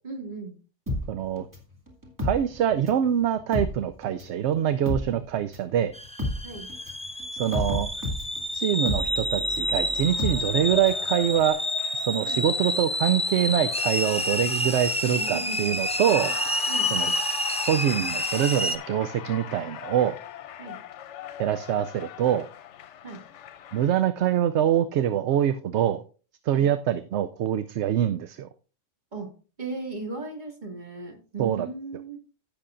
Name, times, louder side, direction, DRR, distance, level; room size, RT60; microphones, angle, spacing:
voice 1, 0.0-0.5 6.4-6.7 12.3-12.6 15.2-15.7 16.2-16.3 16.7-17.1 20.6-20.8 23.0-23.2 26.5-26.7 29.1-29.3 29.6-32.2, right 3 dB, 40° right, 1 dB, 2.5 m, -37 dB
sound 1, 0.9-3.1 3.4-11.1 11.4-11.5, left 1 dB, 15° right, 2.1 m, -32 dB
voice 2, 1.1-1.5 2.2-5.9 7.3-7.9 8.5-11.6 11.9-16.3 16.9-17.1 17.7-20.2 21.4-22.5 23.7-26.0 26.4-28.5 31.4-31.7, right 10 dB, 70° right, 11 dB, 0.8 m, -24 dB
sound 2, 5.9-18.8, left 1 dB, 5° left, 0.5 m, -29 dB
Cheering, 8.7-23.9, left 10 dB, 75° left, 0.9 m, -40 dB
15.5 x 6.8 x 2.5 m, 0.37 s
omnidirectional pair, 1.2 m